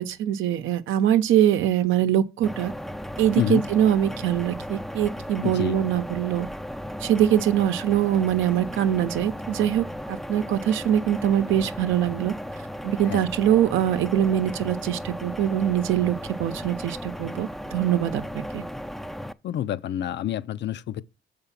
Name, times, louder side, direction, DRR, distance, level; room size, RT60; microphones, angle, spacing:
voice 1, 0.0-2.7 3.2-6.5 7.0-12.3 12.8-18.2 18.5-18.6, right 11 dB, 80° right, 0.7 m, -23 dB
sound 1, 2.4-19.3, equal, ahead, 0.4 m, -36 dB
voice 2, 5.4-5.8 13.1-13.2 19.4-21.0, left 11 dB, 65° left, 0.6 m, -27 dB
6.8 x 5.2 x 5.7 m
cardioid pair, 90°, 20 cm